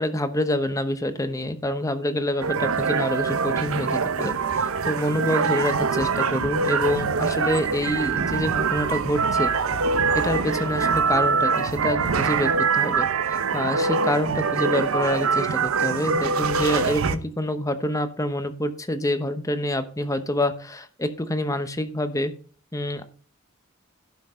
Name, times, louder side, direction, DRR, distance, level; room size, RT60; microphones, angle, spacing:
voice 1, 0.0-9.5 10.1-22.3 22.7-23.0, left 1 dB, 15° left, 10 dB, 0.9 m, -27 dB
sound 1, 2.4-17.2, right 5 dB, 80° right, 0.7 m, -24 dB
11.5 x 5.8 x 4.4 m, 0.43 s
head